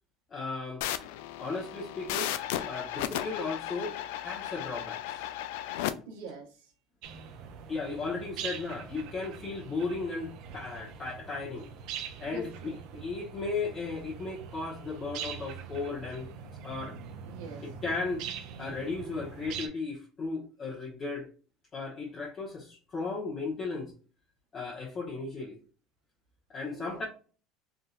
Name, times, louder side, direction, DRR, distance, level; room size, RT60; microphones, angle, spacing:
voice 1, 0.3-0.8 1.4-2.3 2.7-5.0 7.7-11.7 12.2-16.3 16.6-17.0 17.6-18.2 18.6-21.3 21.7-23.9 24.5-25.6 26.5-27.0, left 3 dB, 35° left, -5 dB, 1.1 m, -35 dB
sound 1, 0.8-5.9, left 12 dB, 80° left, 0.3 m, -35 dB
voice 2, 6.1-6.7 12.3-13.0 17.3-17.7 26.6-27.0, right 3 dB, 90° right, 0 dB, 1.2 m, -44 dB
sound 2, 7.0-19.7, right 7 dB, 70° right, 0.6 m, -43 dB
3.6 x 2.7 x 2.4 m, 0.38 s
supercardioid pair, 100°, 0 cm